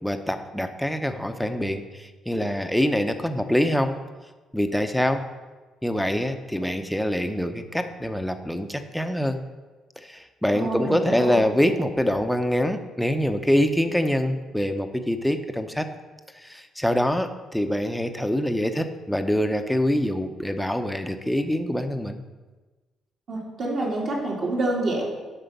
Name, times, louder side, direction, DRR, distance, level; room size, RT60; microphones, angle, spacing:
voice 1, 0.0-4.0 4.5-5.2 5.8-9.4 10.0-15.9 16.3-22.2, equal, ahead, 7 dB, 0.8 m, -25 dB
voice 2, 10.5-11.4 23.3-25.0, right 2 dB, 55° right, -4 dB, 3.1 m, -27 dB
10.0 x 6.1 x 5.4 m, 1.3 s
cardioid pair, 105°, 0 cm